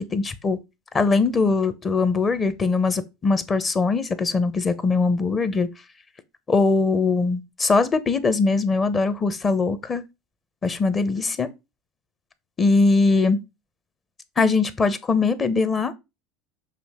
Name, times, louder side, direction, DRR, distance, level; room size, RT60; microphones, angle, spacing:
voice 1, 0.1-0.6 0.9-5.7 6.5-10.0 10.6-11.5 12.6-13.4 14.4-15.9, left 4 dB, 25° left, 1.0 m, -21 dB
6.9 x 3.0 x 5.6 m
supercardioid pair, 105°, 0 cm